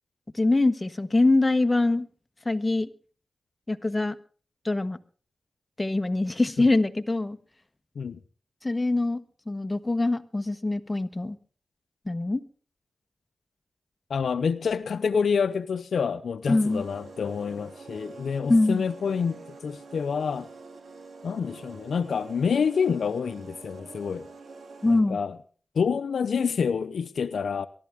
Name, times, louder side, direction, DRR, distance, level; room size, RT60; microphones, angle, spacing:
voice 1, 0.3-2.1 2.4-2.9 3.7-4.2 4.6-5.0 5.8-7.4 8.6-9.2 9.5-11.4 12.0-12.4 16.5-16.8 18.5-18.9 24.8-25.2, left 2 dB, 25° left, 1.3 m, -23 dB
voice 2, 14.1-20.5 21.2-24.3 24.9-25.4 25.8-27.7, left 6 dB, 90° left, 0.6 m, -27 dB
sound 1, 16.4-25.2, right 3 dB, 80° right, 2.6 m, -46 dB
23.0 x 12.0 x 3.5 m
cardioid pair, 55°, 0 cm